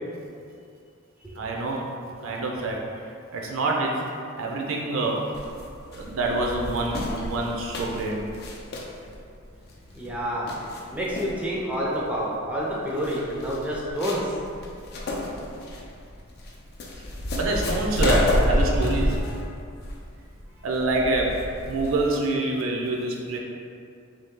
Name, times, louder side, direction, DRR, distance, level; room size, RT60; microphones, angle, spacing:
voice 1, 1.3-1.9 2.2-2.8 3.3-4.0 4.4-5.3 5.9-8.3 17.3-19.2 20.6-21.4 21.7-23.4, right 2 dB, 70° right, -1 dB, 0.5 m, -26 dB
sound 1, 5.3-22.1, left 1 dB, 50° left, 0.4 m, -30 dB
voice 2, 9.9-10.5 10.9-14.3 19.1-19.4, equal, 5° right, -6 dB, 0.4 m, -28 dB
3.1 x 2.8 x 3.5 m, 2.4 s
head